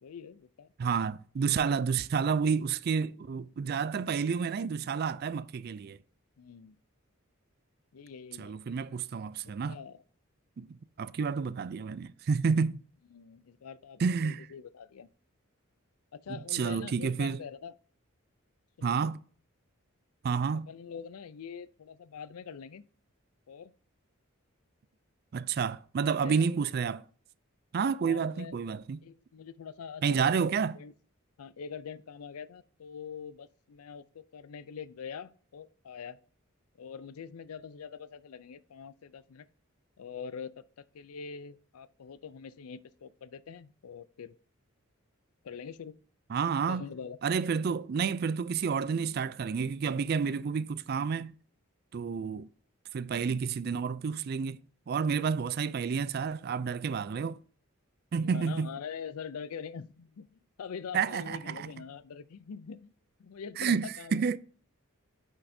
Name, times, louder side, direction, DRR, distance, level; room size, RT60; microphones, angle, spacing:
voice 1, 0.0-0.7 3.9-4.1 6.4-6.8 7.9-8.5 9.4-10.0 13.1-15.1 16.1-17.7 18.8-19.1 20.7-22.8 23.5-23.7 26.2-26.5 28.0-28.6 29.0-30.5 30.7-30.9 31.4-36.2 36.8-39.5 40.0-44.3 45.4-46.0 46.6-47.2 58.2-62.9 63.2-64.4, left 6 dB, 90° left, 0.4 m, -44 dB
voice 2, 0.8-6.0 8.4-9.8 10.6-10.7 11.0-12.8 14.0-14.5 16.3-17.4 18.8-19.2 20.2-20.7 25.3-27.0 27.7-29.0 30.0-30.8 46.3-46.9 47.2-51.4 51.9-52.5 52.9-54.6 54.9-57.4 58.1-58.7 60.9-61.7 63.6-64.4, right 6 dB, 45° right, 0.3 m, -30 dB
8.2 x 5.9 x 2.7 m
head